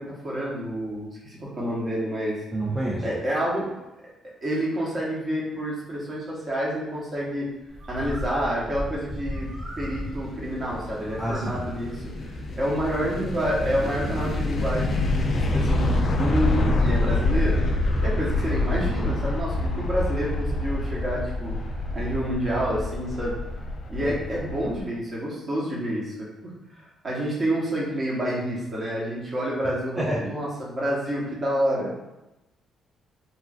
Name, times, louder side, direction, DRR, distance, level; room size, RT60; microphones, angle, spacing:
voice 1, 0.0-2.4 3.0-3.7 4.4-7.5 7.9-9.5 9.8-12.3 12.6-17.6 18.0-21.6 21.9-23.3 23.9-31.9, equal, 35° right, -5 dB, 1.0 m, -28 dB
voice 2, 2.5-3.1 11.2-11.7 24.0-24.2 30.0-30.2, right 1 dB, 10° right, -4 dB, 0.4 m, -28 dB
Bird, 7.7-17.3, equal, 60° right, 0.9 m, -39 dB
sound 1, 9.3-24.8, left 2 dB, 50° left, 0.4 m, -26 dB
2.9 x 2.4 x 2.4 m, 0.99 s
cardioid pair, 90°, 0 cm